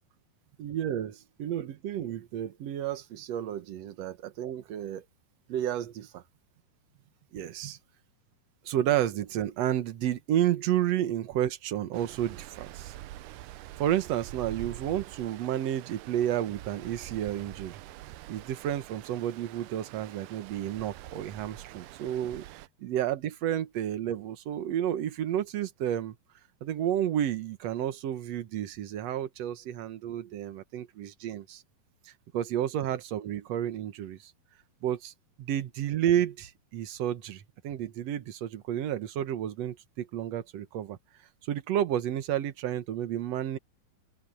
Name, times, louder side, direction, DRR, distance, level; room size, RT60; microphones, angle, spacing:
voice 1, 0.6-5.1 5.5-6.2 7.3-7.8 8.7-12.9 13.8-17.8 18.3-22.4 22.8-26.2 26.6-31.6 32.1-34.3 34.8-35.1 35.4-41.0 41.4-43.6, right 11 dB, 60° right, 1.9 m, -31 dB
Stream, 11.9-22.7, right 15 dB, 80° right, 2.0 m, -45 dB
open air
omnidirectional pair, 4.1 m